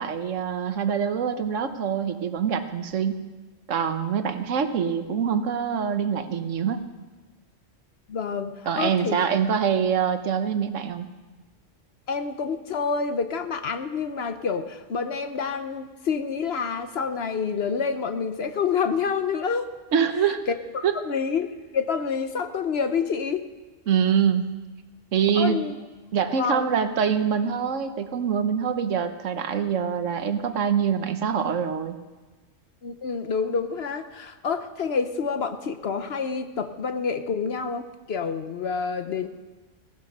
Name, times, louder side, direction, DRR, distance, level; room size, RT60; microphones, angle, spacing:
voice 1, 0.0-3.2 3.7-6.8 8.7-11.1 19.9-20.4 20.8-21.0 23.9-24.5 25.1-25.6 26.1-32.0, right 7 dB, 75° right, 9 dB, 1.3 m, -24 dB
voice 2, 8.1-9.2 12.1-19.7 21.0-21.5 21.7-23.5 25.4-25.7 26.4-26.7 32.8-39.3, left 5 dB, 55° left, 9 dB, 1.0 m, -28 dB
17.0 x 12.0 x 5.4 m, 1.2 s
omnidirectional pair, 1.3 m